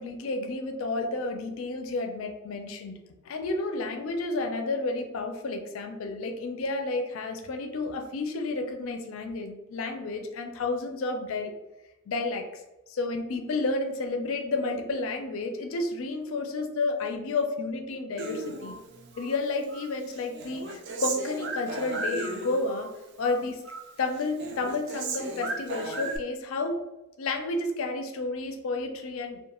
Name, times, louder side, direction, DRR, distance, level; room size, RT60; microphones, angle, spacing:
voice 1, 0.0-2.9 3.2-11.5 12.1-12.4 12.9-18.8 19.2-22.9 23.2-23.6 24.0-26.8 27.2-29.4, left 3 dB, 70° left, 4 dB, 0.4 m, -31 dB
Human voice, 18.2-19.4 19.7-22.9 23.2-23.9 24.2-26.2, right 2 dB, 55° right, 0.4 m, -35 dB
2.3 x 2.2 x 2.9 m, 0.98 s
head